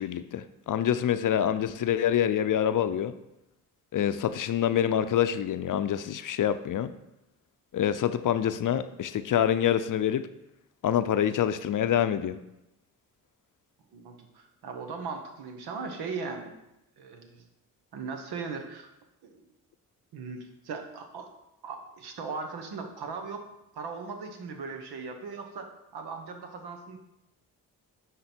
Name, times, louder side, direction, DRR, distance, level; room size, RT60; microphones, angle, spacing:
voice 1, 0.0-3.1 3.9-6.9 7.7-10.3 10.8-12.4, left 10 dB, 55° left, 11 dB, 0.6 m, -26 dB
voice 2, 13.9-16.5 17.0-17.4 17.9-18.9 19.2-19.4 20.1-21.3 21.6-23.4 23.7-27.0, right 4 dB, 80° right, 5 dB, 1.1 m, -38 dB
9.6 x 3.9 x 4.4 m, 0.89 s
supercardioid pair, 50°, 38 cm